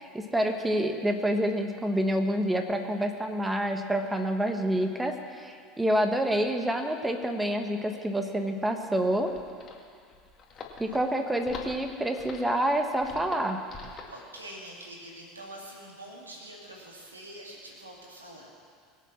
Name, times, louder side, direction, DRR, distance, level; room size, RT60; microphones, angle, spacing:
voice 1, 0.0-9.3 10.8-13.6, right 1 dB, 10° right, 5 dB, 1.5 m, -28 dB
sound 1, 9.1-14.2, left 5 dB, 35° left, 2.1 m, -45 dB
voice 2, 14.1-18.5, right 1 dB, 85° right, -1 dB, 2.6 m, -45 dB
22.0 x 8.3 x 6.3 m, 2.2 s
figure-of-eight pair, 70°, 0 cm